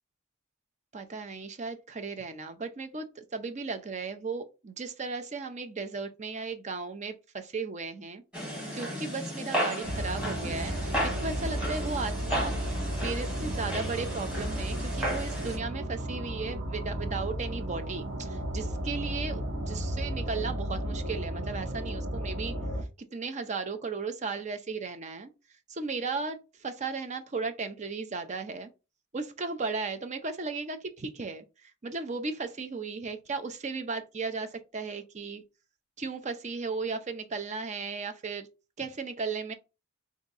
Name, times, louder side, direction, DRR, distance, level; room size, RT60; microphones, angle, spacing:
voice 1, 0.9-8.2 8.7-12.5 13.0-22.6 23.1-25.3 25.7-28.7 29.1-35.4 36.0-38.5 38.8-39.5, right 4 dB, 35° right, 0.5 m, -36 dB
sound 1, 8.3-15.6, equal, 5° right, 1.7 m, -34 dB
sound 2, 9.8-22.8, right 1 dB, 75° right, 1.2 m, -34 dB
3.6 x 2.6 x 3.9 m
head